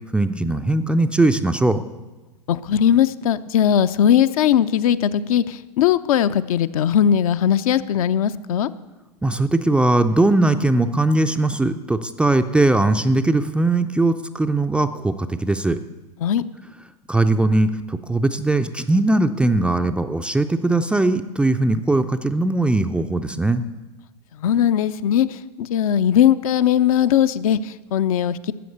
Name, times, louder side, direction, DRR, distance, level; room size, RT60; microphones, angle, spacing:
voice 1, 0.1-1.8 9.2-15.8 17.1-23.6, right 2 dB, 5° right, 8 dB, 0.4 m, -20 dB
voice 2, 2.5-8.7 16.2-16.4 24.3-28.5, left 9 dB, 55° left, 12 dB, 0.6 m, -19 dB
13.0 x 7.7 x 7.9 m, 1.1 s
figure-of-eight pair, 100°, 21 cm